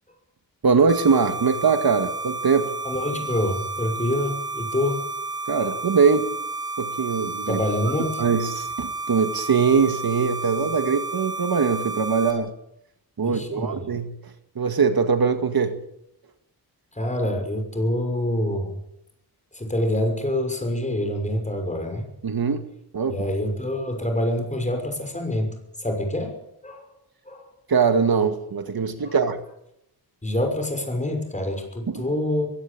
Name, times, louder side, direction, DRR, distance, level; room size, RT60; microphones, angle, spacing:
voice 1, 0.6-2.7 5.5-6.3 6.8-7.6 8.0-12.5 13.2-15.8 22.2-22.7 22.9-23.3 27.7-29.4 31.9-32.1, right 5 dB, 70° right, 8 dB, 2.0 m, -22 dB
sound 1, 0.9-12.3, right 3 dB, 10° right, 5.5 m, -31 dB
voice 2, 2.8-5.0 5.6-5.7 7.5-8.2 13.2-13.8 16.9-18.8 19.5-22.1 23.1-26.4 26.6-26.9 27.3-27.5 29.0-29.2 30.2-32.5, left 1 dB, 20° left, 4 dB, 6.1 m, -26 dB
22.5 x 17.0 x 8.7 m, 0.80 s
wide cardioid pair, 120°, 39 cm